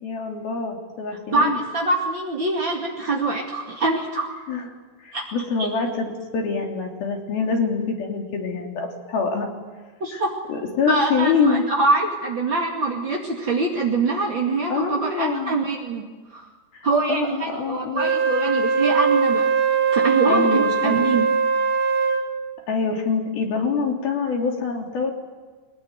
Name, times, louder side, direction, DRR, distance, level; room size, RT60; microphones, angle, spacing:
voice 1, 0.0-1.6 4.5-4.7 5.0-6.1 6.3-9.5 10.1-10.2 10.5-11.6 14.7-15.5 16.7-18.1 20.3-21.0 22.7-25.1, left 5 dB, 50° left, 2 dB, 4.6 m, -25 dB
voice 2, 1.3-4.3 5.1-5.2 10.0-10.3 10.9-16.5 16.8-19.5 19.9-21.3, right 3 dB, 40° right, -1 dB, 1.8 m, -24 dB
Wind instrument woodwind instrument, 17.9-22.3, right 5 dB, 55° right, 3.5 m, -21 dB
23.0 x 21.0 x 9.5 m, 1.4 s
omnidirectional pair, 5.7 m